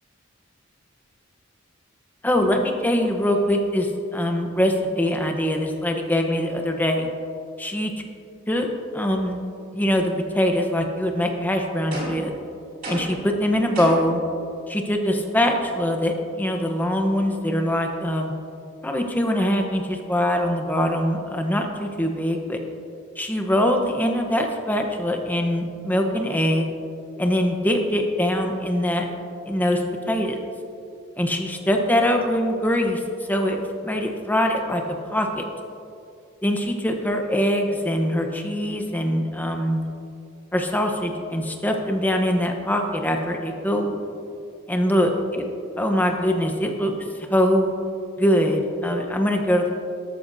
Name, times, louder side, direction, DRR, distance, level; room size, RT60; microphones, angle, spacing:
voice 1, 2.2-7.1 7.6-7.9 8.5-8.7 8.9-9.4 9.7-12.4 12.9-14.2 14.7-18.3 18.8-22.6 23.2-26.7 27.2-29.1 29.5-30.4 31.2-33.0 33.3-34.8 35.1-35.4 36.4-39.9 40.5-44.0 44.7-45.4 45.8-46.9 47.2-47.7 48.2-49.7, equal, 10° left, 3 dB, 0.8 m, -23 dB
sound 1, 11.9-12.3 12.8-13.3 13.7-14.2, right 1 dB, 45° right, 2.7 m, -31 dB
13.0 x 13.0 x 2.7 m, 2.5 s
head